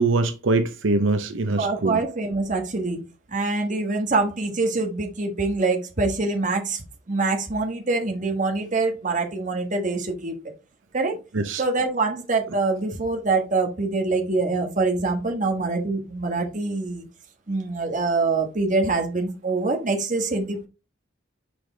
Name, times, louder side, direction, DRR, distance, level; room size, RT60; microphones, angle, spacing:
voice 1, 0.0-2.0 11.3-11.6, right 3 dB, 85° right, 0.8 m, -23 dB
voice 2, 1.6-3.0 3.3-10.3 10.9-11.2 11.5-17.1 17.5-20.7, right 3 dB, 40° right, 1.3 m, -25 dB
6.0 x 4.9 x 3.4 m
head